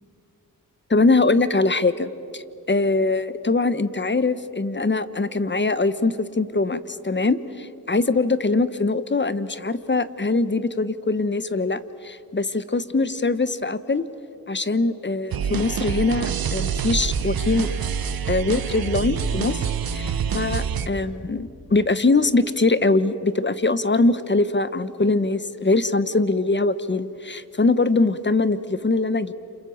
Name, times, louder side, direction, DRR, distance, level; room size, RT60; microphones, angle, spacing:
voice 1, 0.9-2.4 2.7-14.0 14.5-17.7 18.3-29.3, left 3 dB, 30° left, 14 dB, 1.2 m, -22 dB
sound 1, 15.3-20.9, right 7 dB, 75° right, 1.0 m, -26 dB
29.0 x 27.0 x 7.3 m, 2.7 s
cardioid pair, 55°, 36 cm